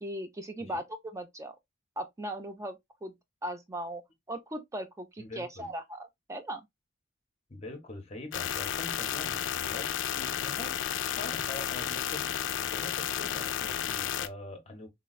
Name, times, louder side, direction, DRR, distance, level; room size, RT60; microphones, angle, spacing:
voice 1, 0.0-1.6 2.0-3.1 3.4-4.0 4.3-6.6, right 1 dB, 15° right, 0.4 m, -38 dB
voice 2, 5.2-5.7 7.5-10.8 11.0-14.9, left 2 dB, 35° left, 0.7 m, -44 dB
sound 1, 8.3-14.3, left 10 dB, 70° left, 0.3 m, -32 dB
3.9 x 2.2 x 2.2 m
head